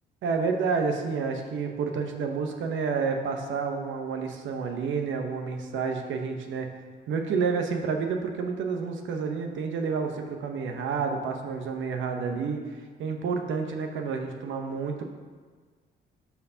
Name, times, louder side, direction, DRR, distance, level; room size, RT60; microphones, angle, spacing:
voice 1, 0.2-6.7 7.1-15.0, right 5 dB, 75° right, 4 dB, 0.9 m, -29 dB
12.0 x 4.6 x 2.7 m, 1.5 s
cardioid pair, 90°, 20 cm